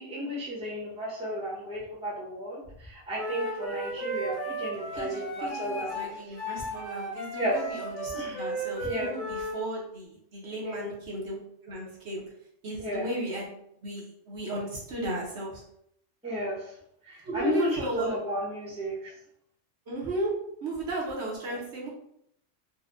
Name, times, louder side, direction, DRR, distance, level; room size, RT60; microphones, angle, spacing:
voice 1, 0.0-6.1 7.4-7.5 8.1-8.4 8.8-9.1 10.6-10.9 12.8-13.1 16.2-16.7 17.1-19.1, equal, 5° right, -6 dB, 0.8 m, -33 dB
Wind instrument woodwind instrument, 3.1-9.6, right 1 dB, 90° left, 1.6 m, -35 dB
voice 2, 4.9-11.4 11.6-12.2 12.6-13.5 13.8-15.6 17.2-18.1 19.9-20.3 20.6-21.9, right 1 dB, 60° right, -4 dB, 1.1 m, -35 dB
4.1 x 2.2 x 2.5 m, 0.73 s
omnidirectional pair, 1.3 m